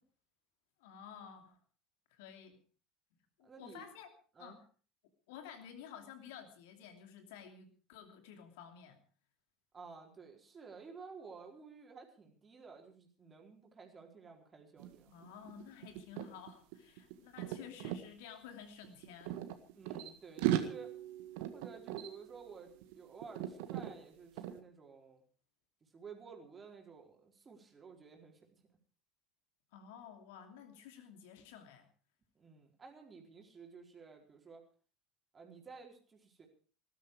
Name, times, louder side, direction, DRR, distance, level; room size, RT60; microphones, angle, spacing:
voice 1, 0.8-1.6 2.1-2.6 3.4-4.1 4.4-4.6 5.3-9.0 15.1-19.4 29.7-31.9, left 8 dB, 60° left, 7 dB, 2.8 m, -52 dB
voice 2, 3.4-3.8 4.3-4.6 9.7-15.2 19.7-20.9 21.5-25.2 25.8-28.5 32.4-34.6 35.3-36.5, right 5 dB, 25° right, 1 dB, 4.5 m, -53 dB
sound 1, 14.8-15.0 15.2-18.0 18.8-20.1 20.4-22.9 23.2-23.9 24.4-24.6, right 12 dB, 60° right, 1.7 m, -38 dB
19.5 x 12.5 x 4.9 m, 0.40 s
figure-of-eight pair, 70°, 0 cm